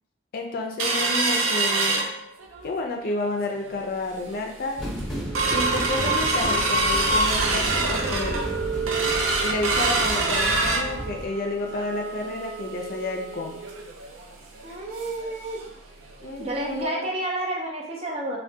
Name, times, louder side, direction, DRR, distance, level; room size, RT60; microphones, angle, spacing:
voice 1, 0.3-2.1 2.6-4.8 5.5-8.5 9.4-13.6 16.2-17.1, left 2 dB, 50° left, 2 dB, 0.4 m, -30 dB
sound 1, 0.8-2.7 3.1-3.2 3.5-3.9 4.3-4.4 4.8-15.3 15.6-15.7 16.1-16.3 16.8-16.9, right 3 dB, 80° right, 0.4 m, -25 dB
sound 2, 4.8-11.3, equal, ahead, 0.8 m, -33 dB
voice 2, 14.6-15.6 16.4-18.4, right 1 dB, 30° right, -1 dB, 0.6 m, -30 dB
3.3 x 2.1 x 2.7 m, 0.73 s
head